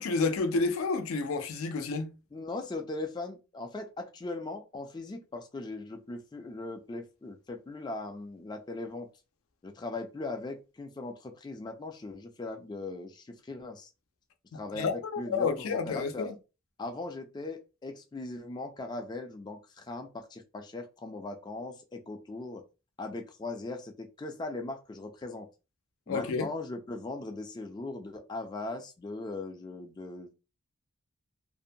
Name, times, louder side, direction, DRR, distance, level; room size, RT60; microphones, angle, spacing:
voice 1, 0.0-2.1 14.5-16.3 26.1-26.5, left 4 dB, 80° left, 0.4 m, -30 dB
voice 2, 2.3-9.1 9.6-13.9 14.5-16.3 16.8-22.6 23.0-25.5 26.1-30.3, left 2 dB, 20° left, 0.3 m, -39 dB
2.6 x 2.1 x 2.6 m
head